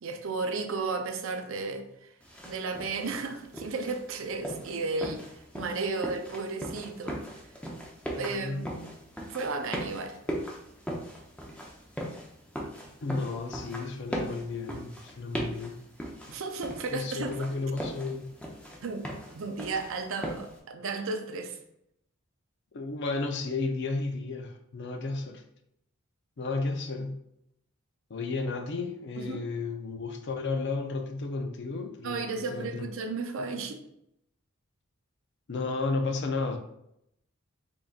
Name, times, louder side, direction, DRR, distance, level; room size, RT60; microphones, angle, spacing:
voice 1, 0.0-2.1 2.5-5.3 5.5-7.2 8.2-8.7 9.3-10.2 16.3-17.5 18.8-19.1 19.3-21.6 29.2-29.5 32.0-33.8, right 3 dB, 65° right, 0.5 m, -34 dB
sound 1, 2.2-20.6, equal, 5° left, 0.5 m, -39 dB
voice 2, 8.2-9.0 13.0-15.8 16.9-18.3 22.7-25.4 26.4-27.2 28.1-32.9 35.5-36.6, left 3 dB, 55° left, 0.5 m, -33 dB
3.8 x 3.5 x 2.4 m
head